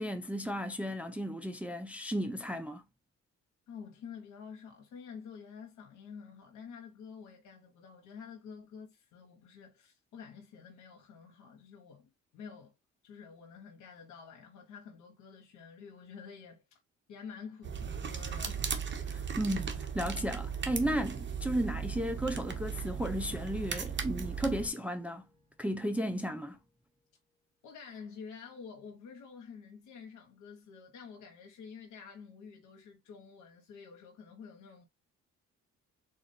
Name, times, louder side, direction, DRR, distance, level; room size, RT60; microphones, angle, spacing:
voice 1, 0.0-2.8 19.1-25.2 25.6-26.6, equal, 5° right, 0.5 m, -34 dB
voice 2, 3.7-12.7 13.0-16.8 17.1-18.7 27.6-34.9, left 6 dB, 85° left, 1.1 m, -49 dB
sound 1, 17.6-24.7, right 7 dB, 40° right, 0.9 m, -37 dB
Acoustic guitar / Strum, 23.3-26.7, left 1 dB, 10° left, 1.6 m, -61 dB
3.9 x 2.5 x 4.1 m
cardioid pair, 90°, 30 cm